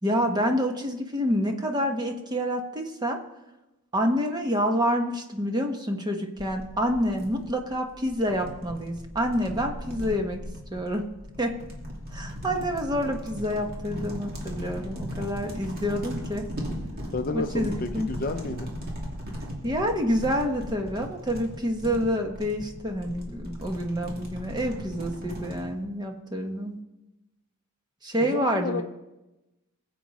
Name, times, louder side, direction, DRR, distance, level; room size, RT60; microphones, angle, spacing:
voice 1, 0.0-3.2 3.9-10.4 10.7-11.1 11.4-11.5 12.1-16.5 17.3-18.1 19.6-26.8 28.0-28.8, equal, 20° right, 4 dB, 1.1 m, -28 dB
sound 1, 6.4-25.7, equal, 45° right, 2.7 m, -38 dB
voice 2, 17.1-18.7 28.2-28.8, left 3 dB, 40° left, 8 dB, 0.5 m, -31 dB
21.0 x 7.9 x 4.1 m, 1.0 s
head